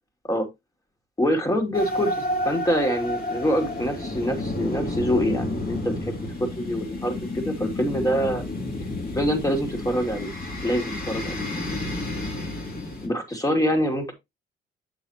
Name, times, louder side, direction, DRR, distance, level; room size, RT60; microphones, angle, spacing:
voice 1, 1.2-8.4 9.2-10.3 10.6-11.4 13.0-14.1, equal, 15° left, 2.7 m, -25 dB
sound 1, 1.7-13.1, left 2 dB, 50° left, 2.5 m, -30 dB
7.5 x 7.0 x 2.9 m
cardioid pair, 90°, 20 cm